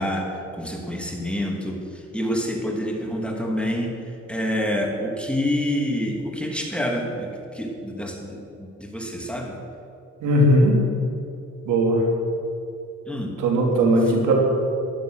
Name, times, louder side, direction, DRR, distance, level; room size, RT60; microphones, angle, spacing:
voice 1, 0.0-3.9 4.3-9.5 13.1-13.3, equal, 5° left, 0 dB, 2.6 m, -27 dB
voice 2, 10.2-10.8 11.7-12.1 13.4-14.4, right 1 dB, 85° right, 0 dB, 3.1 m, -18 dB
15.0 x 11.0 x 6.4 m, 2.6 s
cardioid pair, 90°, 30 cm